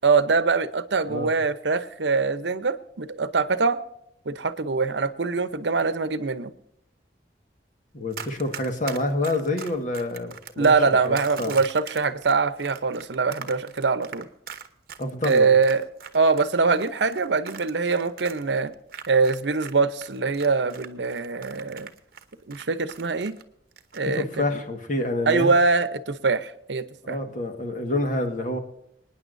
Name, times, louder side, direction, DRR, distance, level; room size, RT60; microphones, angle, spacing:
voice 1, 0.0-3.8 4.3-6.5 10.6-14.3 15.2-15.8 16.1-18.7 19.1-21.9 22.5-23.4 23.9-24.4 25.3-27.2, right 4 dB, 80° right, 13 dB, 0.8 m, -23 dB
voice 2, 7.9-11.5 15.0-15.5 24.0-25.5 27.0-28.6, left 1 dB, 45° left, 5 dB, 1.6 m, -28 dB
Run, 8.1-19.7 20.0-23.4 23.7-24.0, right 7 dB, 55° right, 1.0 m, -40 dB
27.0 x 9.8 x 2.7 m, 0.78 s
head